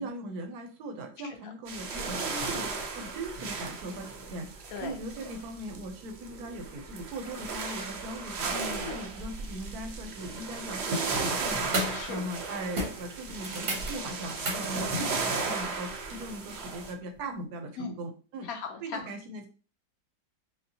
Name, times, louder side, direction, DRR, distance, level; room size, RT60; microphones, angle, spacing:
voice 1, 0.0-18.5 18.8-19.5, right 1 dB, 70° right, 5 dB, 1.0 m, -39 dB
sound 1, 1.7-16.9, right 4 dB, 85° right, 0.5 m, -35 dB
voice 2, 8.5-9.0 11.9-12.2 14.7-14.9 17.8-18.0 18.4-19.0, left 5 dB, 60° left, 4 dB, 1.0 m, -38 dB
sound 2, 11.6-12.1 12.3-12.5 12.8-15.1 17.2-17.3, right 1 dB, 45° right, 0.8 m, -34 dB
5.2 x 2.0 x 2.7 m, 0.37 s
omnidirectional pair, 2.0 m